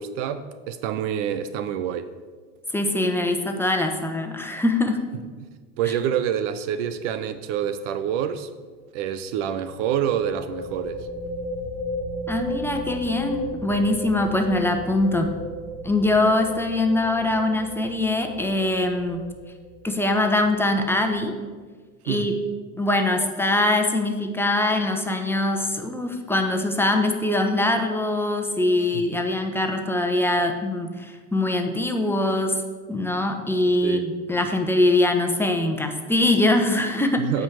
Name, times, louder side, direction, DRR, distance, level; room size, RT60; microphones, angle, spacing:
voice 1, 0.0-2.1 5.8-8.5 8.9-11.1 22.1-22.4 28.9-29.0 33.8-34.1 37.2-37.4, right 9 dB, 60° right, 12 dB, 0.8 m, -27 dB
voice 2, 2.7-5.0 12.3-15.3 15.8-19.2 19.8-21.3 22.0-22.3 22.8-32.6 32.9-37.3, left 2 dB, 5° left, 4 dB, 1.1 m, -23 dB
sound 1, 6.9-7.1 7.4-7.5 10.0-21.3, left 1 dB, 45° right, 2.4 m, -35 dB
8.5 x 5.2 x 7.7 m, 1.4 s
hypercardioid pair, 100°, 40 cm